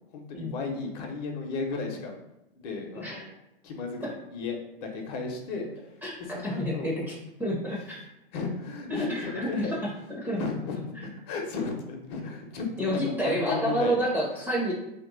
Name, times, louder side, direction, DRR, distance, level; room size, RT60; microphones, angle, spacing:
voice 1, 0.1-2.2 2.5-3.3 3.6-4.0 4.3-6.9 8.3-9.7 10.4-14.1, left 4 dB, 40° left, 2 dB, 0.8 m, -34 dB
voice 2, 6.4-7.0 7.4-8.0 8.9-9.7 10.1-10.4 12.8-14.7, equal, 5° right, -5 dB, 0.6 m, -29 dB
3.0 x 2.9 x 3.9 m, 0.88 s
hypercardioid pair, 140°, 31 cm